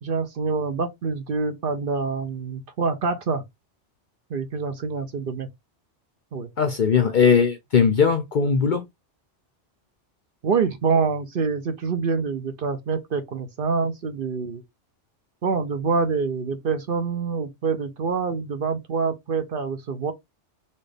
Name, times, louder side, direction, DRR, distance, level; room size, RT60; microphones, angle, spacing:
voice 1, 0.0-3.4 4.3-5.5 6.3-6.5 10.4-14.6 15.4-20.1, right 5 dB, 55° right, 0.8 m, -26 dB
voice 2, 6.6-8.8, left 6 dB, 55° left, 0.6 m, -19 dB
4.2 x 2.4 x 3.3 m
omnidirectional pair, 1.2 m